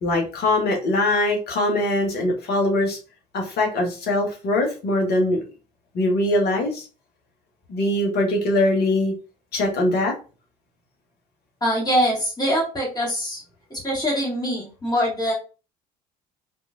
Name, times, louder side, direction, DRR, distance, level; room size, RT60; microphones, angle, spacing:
voice 1, 0.0-3.0 3.3-5.4 5.9-6.8 7.7-9.1 9.5-10.1, left 1 dB, 50° left, 1 dB, 1.4 m, -22 dB
voice 2, 11.6-13.4 13.7-15.3, equal, 20° left, -4 dB, 2.1 m, -23 dB
4.3 x 3.1 x 2.6 m, 0.34 s
figure-of-eight pair, 55°, 21 cm